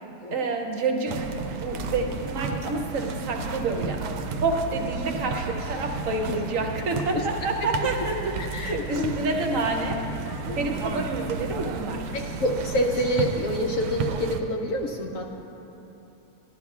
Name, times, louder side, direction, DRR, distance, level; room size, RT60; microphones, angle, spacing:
voice 1, 0.3-1.3 1.5-4.0 4.4-10.0 10.5-12.1, right 3 dB, 60° right, 3 dB, 1.0 m, -28 dB
sound 1, 1.1-14.4, right 4 dB, 80° right, 1.2 m, -33 dB
voice 2, 8.4-9.1 10.4-10.6 12.1-15.2, equal, 70° left, 1 dB, 0.8 m, -27 dB
13.5 x 11.0 x 2.4 m, 3.0 s
omnidirectional pair, 1.8 m